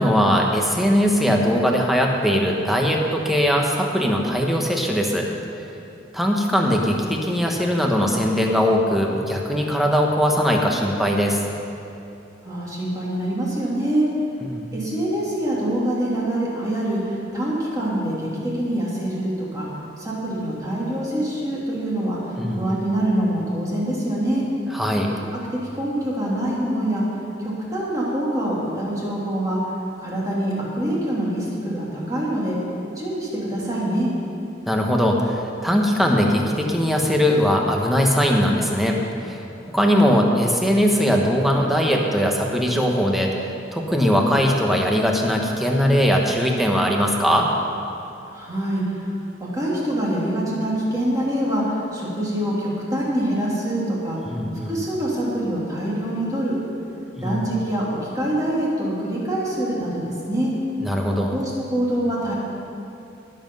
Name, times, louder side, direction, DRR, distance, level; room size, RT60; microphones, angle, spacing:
voice 1, 0.0-5.3 6.1-11.4 14.4-14.6 22.4-22.8 24.7-25.1 34.7-39.4 39.7-43.3 43.7-47.5 54.2-54.8 57.2-57.4 60.8-61.4, equal, ahead, 0 dB, 1.2 m, -20 dB
voice 2, 12.4-14.1 14.7-19.7 20.0-22.2 22.5-24.4 25.7-27.0 27.4-29.6 30.0-32.6 33.0-34.1 48.3-49.0 49.4-54.2 54.7-56.5 57.2-60.5 61.3-62.3, right 1 dB, 20° right, -6 dB, 2.8 m, -25 dB
18.5 x 7.5 x 5.5 m, 2.7 s
head